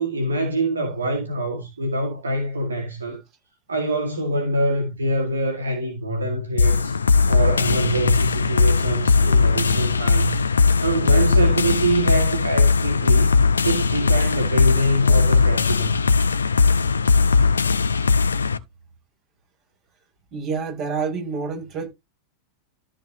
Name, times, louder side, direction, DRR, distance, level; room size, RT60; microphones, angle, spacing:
voice 1, 0.0-3.2 3.7-7.0 7.3-10.4 10.8-13.3 13.6-15.9, right 1 dB, 75° right, 2.0 m, -25 dB
sound 1, 6.6-18.6, left 4 dB, 75° left, 0.7 m, -19 dB
voice 2, 20.3-21.9, right 5 dB, 35° right, 5.9 m, -28 dB
13.5 x 6.1 x 2.9 m
figure-of-eight pair, 90°, 0 cm